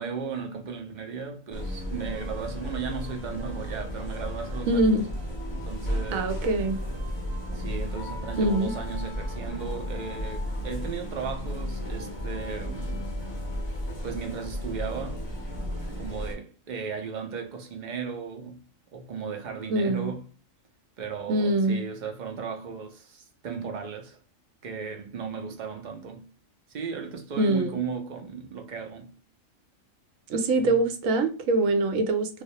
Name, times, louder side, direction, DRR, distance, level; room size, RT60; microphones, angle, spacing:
voice 1, 0.0-5.0 5.5-6.4 7.5-13.1 14.0-15.2 16.0-18.6 18.9-20.2 21.0-24.2 24.6-26.3 26.7-29.1 30.6-30.8, right 5 dB, 65° right, 0.4 m, -36 dB
sound 1, 1.5-16.3, equal, 30° left, 0.5 m, -34 dB
voice 2, 4.7-5.1 6.1-6.8 8.4-8.7 19.7-20.2 21.3-21.8 27.4-27.8 30.3-32.4, right 2 dB, 80° right, 1.0 m, -24 dB
2.3 x 2.1 x 2.7 m
omnidirectional pair, 1.4 m